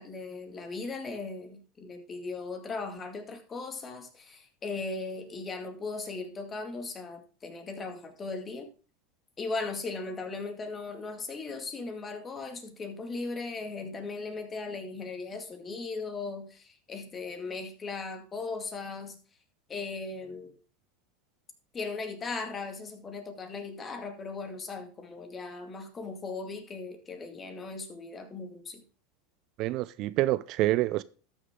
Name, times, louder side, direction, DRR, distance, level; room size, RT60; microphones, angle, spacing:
voice 1, 0.0-8.7 9.4-19.2 19.7-20.6 21.7-28.8, left 3 dB, 25° left, 2.1 m, -38 dB
voice 2, 29.6-31.0, right 16 dB, 55° right, 0.4 m, -27 dB
13.0 x 6.4 x 3.7 m
supercardioid pair, 110°, 0 cm